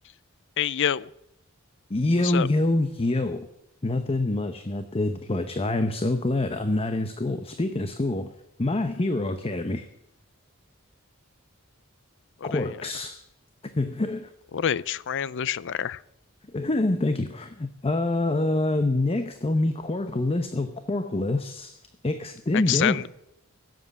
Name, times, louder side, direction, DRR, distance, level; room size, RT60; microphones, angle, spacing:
voice 1, 0.6-1.1 2.2-2.5 12.4-12.7 14.5-16.0 22.5-23.1, left 9 dB, 60° left, 0.5 m, -27 dB
voice 2, 1.9-3.5 3.8-8.3 8.6-9.9 12.4-13.2 13.7-14.3 16.5-21.8 22.0-23.1, left 2 dB, 25° left, 0.8 m, -26 dB
16.5 x 7.8 x 8.0 m
head